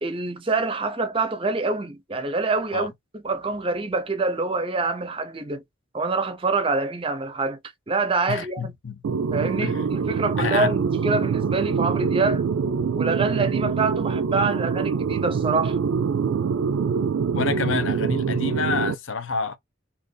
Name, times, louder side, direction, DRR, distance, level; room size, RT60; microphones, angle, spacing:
voice 1, 0.0-5.6 5.9-7.6 7.9-8.7 9.3-12.5 13.0-15.8, right 3 dB, 25° right, 0.5 m, -26 dB
voice 2, 8.3-9.0 9.6-10.1 10.4-10.7 17.3-19.6, left 5 dB, 80° left, 0.7 m, -28 dB
sound 1, 9.0-18.9, right 6 dB, 80° right, 0.3 m, -24 dB
2.9 x 2.6 x 3.7 m
head